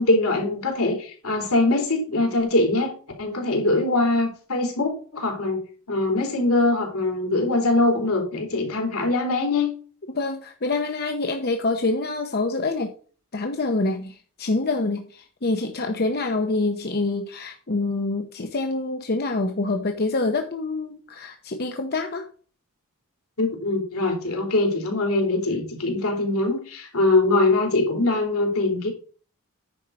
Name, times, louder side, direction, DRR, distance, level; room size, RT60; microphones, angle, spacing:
voice 1, 0.0-2.9 3.2-5.6 5.9-9.7 23.4-28.9, left 2 dB, 80° left, 2 dB, 3.2 m, -22 dB
voice 2, 10.1-12.9 13.3-22.3, left 3 dB, 45° left, 5 dB, 0.9 m, -26 dB
10.0 x 4.5 x 6.2 m, 0.41 s
head